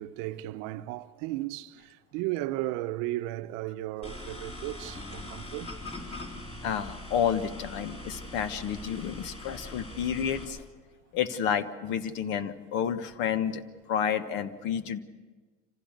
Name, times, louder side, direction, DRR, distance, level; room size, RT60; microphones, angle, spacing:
voice 1, 0.0-5.8, right 16 dB, 80° right, 0.8 m, -35 dB
sound 1, 4.0-10.5, left 1 dB, 30° left, 4.0 m, -42 dB
voice 2, 6.6-10.6 11.1-13.6 13.9-15.0, left 8 dB, 70° left, 1.3 m, -30 dB
26.0 x 15.5 x 6.6 m
supercardioid pair, 115°, 20 cm